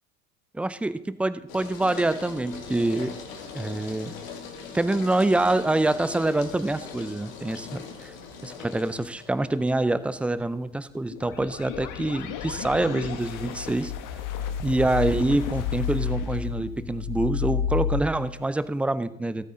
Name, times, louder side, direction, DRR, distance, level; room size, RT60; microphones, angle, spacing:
voice 1, 0.5-3.2 3.5-4.2 4.7-8.1 8.4-13.9 14.6-19.5, right 2 dB, 5° right, 14 dB, 0.4 m, -26 dB
sound 1, 1.5-18.9, left 5 dB, 75° left, 2.4 m, -42 dB
sound 2, 11.1-18.0, left 8 dB, 50° left, 1.4 m, -31 dB
14.0 x 8.6 x 3.8 m, 0.90 s
hypercardioid pair, 90°, 40 cm